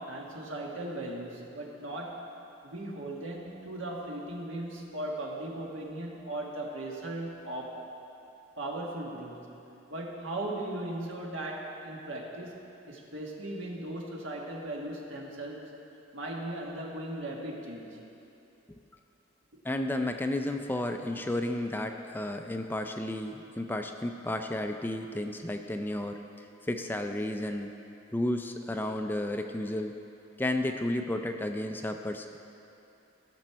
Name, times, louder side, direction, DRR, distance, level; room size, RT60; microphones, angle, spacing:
voice 1, 0.0-2.3 2.6-7.9 8.6-9.6 9.9-15.7 16.1-18.0, right 1 dB, 75° right, -1 dB, 1.6 m, -38 dB
voice 2, 19.6-26.2 26.6-27.7 28.1-29.9 30.4-32.4, left 1 dB, 10° left, 5 dB, 0.4 m, -32 dB
17.0 x 6.1 x 4.5 m, 2.8 s
head